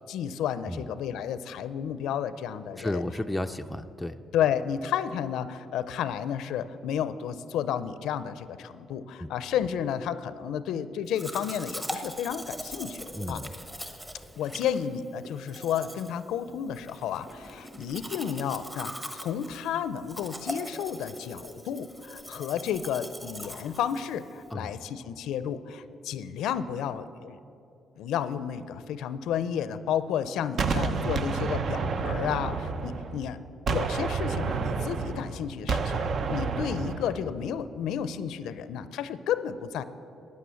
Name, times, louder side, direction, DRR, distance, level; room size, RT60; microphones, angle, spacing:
voice 1, 0.1-3.0 4.3-13.4 14.4-27.4 28.0-33.4 33.7-39.8, left 9 dB, 85° left, 13 dB, 0.4 m, -32 dB
voice 2, 2.8-4.2 9.2-9.3 13.1-13.5 24.5-24.7, left 1 dB, 5° left, 6 dB, 0.4 m, -33 dB
Domestic sounds home sounds, 11.1-24.5, equal, 10° right, 1.1 m, -41 dB
Gunshot gunfire, 30.6-33.3 33.7-37.2, right 5 dB, 55° right, 0.6 m, -29 dB
11.5 x 9.7 x 7.0 m, 2.7 s
cardioid pair, 90°, 0 cm